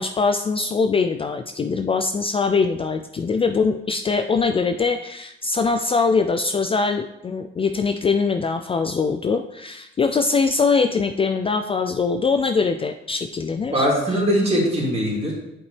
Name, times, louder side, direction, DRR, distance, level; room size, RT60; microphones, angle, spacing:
voice 1, 0.0-14.2, left 4 dB, 30° left, 7 dB, 0.4 m, -22 dB
voice 2, 13.7-15.3, equal, 30° right, -3 dB, 2.9 m, -21 dB
7.9 x 5.4 x 3.3 m, 0.85 s
cardioid pair, 90°, 20 cm